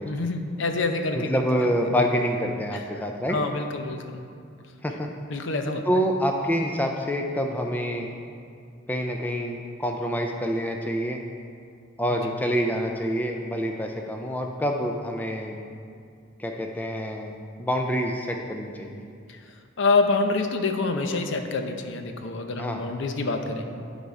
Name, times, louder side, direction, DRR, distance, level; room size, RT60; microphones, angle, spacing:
voice 1, 0.1-1.4 2.7-2.8 3.3-4.2 5.3-5.8 19.3-19.4 19.8-23.6, left 3 dB, 60° left, 6 dB, 0.6 m, -26 dB
voice 2, 1.1-3.4 4.8-5.1 5.9-8.1 8.9-11.2 12.0-15.6 16.4-17.3 17.6-19.1 22.6-22.8, equal, 10° left, 2 dB, 0.4 m, -27 dB
11.5 x 4.1 x 4.8 m, 2.3 s
head